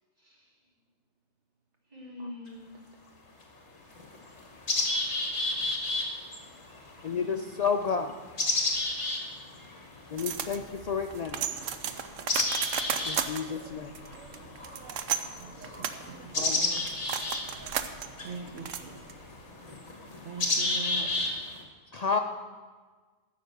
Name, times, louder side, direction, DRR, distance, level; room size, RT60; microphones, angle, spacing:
voice 1, 0.2-0.6 1.9-2.8 7.1-7.4 13.1-13.8 15.3-16.0, left 1 dB, 30° right, -7 dB, 3.9 m, -47 dB
sound 1, 2.5-2.6 3.4-3.5 3.9-21.6, left 2 dB, 60° left, 2.1 m, -33 dB
voice 2, 7.0-8.1 10.1-11.4 13.1-13.9 16.3-16.6 21.9-22.2, left 6 dB, 85° left, 5 dB, 0.3 m, -30 dB
sound 2, 10.2-19.4, right 8 dB, 80° right, 1.0 m, -35 dB
voice 3, 15.4-16.9 18.2-19.1 20.2-21.3, right 4 dB, 65° right, 2 dB, 1.1 m, -42 dB
14.0 x 5.7 x 6.6 m, 1.4 s
omnidirectional pair, 1.3 m